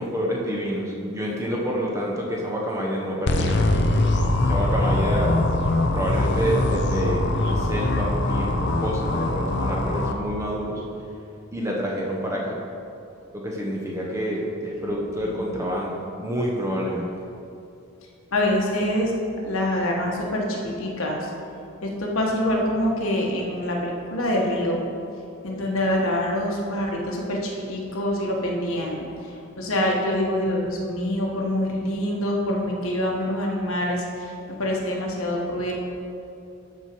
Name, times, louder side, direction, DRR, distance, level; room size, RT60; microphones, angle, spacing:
voice 1, 0.0-3.9 4.4-5.4 5.9-10.8 11.5-12.6 13.3-17.1, equal, 15° right, -2 dB, 0.9 m, -28 dB
sound 1, 3.3-10.1, left 2 dB, 50° left, 0.6 m, -22 dB
voice 2, 14.8-15.3 16.7-16.8 18.3-19.1 19.4-21.2 21.8-24.9 25.4-29.1 29.6-34.0 34.5-35.7, left 1 dB, 70° left, -1 dB, 1.4 m, -25 dB
12.5 x 4.5 x 4.6 m, 2.7 s
head